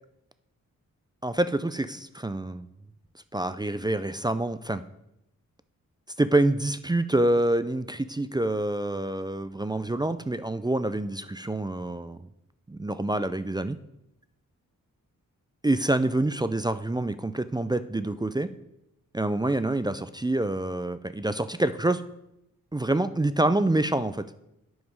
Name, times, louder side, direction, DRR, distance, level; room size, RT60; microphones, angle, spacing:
voice 1, 1.2-2.7 3.3-4.8 6.2-12.2 12.7-13.8 15.6-18.5 19.1-22.0 22.7-24.3, right 1 dB, 10° right, 12 dB, 0.4 m, -26 dB
9.4 x 5.2 x 4.8 m, 0.84 s
cardioid pair, 45°, 35 cm